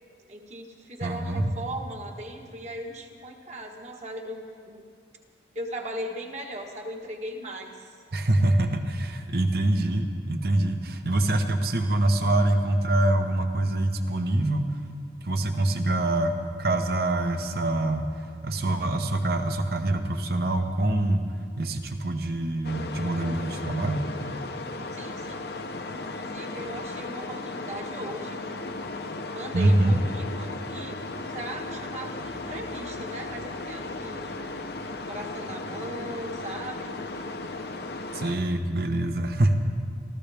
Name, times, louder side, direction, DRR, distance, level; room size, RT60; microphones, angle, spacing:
voice 1, 0.3-4.8 5.5-8.0 24.9-25.5 25.9-28.4 29.3-34.6 35.1-37.0, right 1 dB, 40° right, 2 dB, 1.4 m, -38 dB
voice 2, 1.0-1.5 8.1-14.7 15.2-21.2 21.6-24.1 29.5-30.0 38.1-39.5, right 1 dB, 55° right, 6 dB, 1.1 m, -25 dB
sound 1, 22.6-38.4, left 2 dB, 60° left, 0.9 m, -36 dB
27.0 x 13.5 x 3.5 m, 2.2 s
head